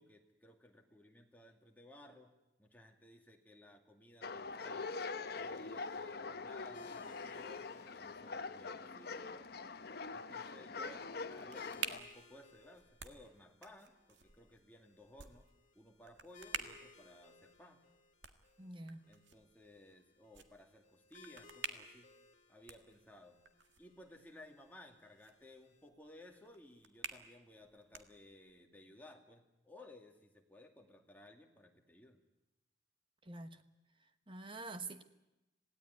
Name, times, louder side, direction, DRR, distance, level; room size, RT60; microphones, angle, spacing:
voice 1, 0.0-2.3 2.6-4.9 5.3-9.5 10.1-15.5 15.7-17.8 19.1-22.1 22.5-23.4 23.8-32.2, left 1 dB, 10° left, 2.4 m, -59 dB
sound 1, 4.2-12.0, left 4 dB, 55° left, 1.0 m, -44 dB
sound 2, 6.7-25.9, left 3 dB, 40° left, 2.2 m, -64 dB
sound 3, 10.9-28.6, right 6 dB, 75° right, 1.8 m, -51 dB
voice 2, 18.6-19.1 33.3-33.6 34.3-35.0, right 3 dB, 25° right, 1.3 m, -46 dB
27.0 x 17.5 x 9.6 m
head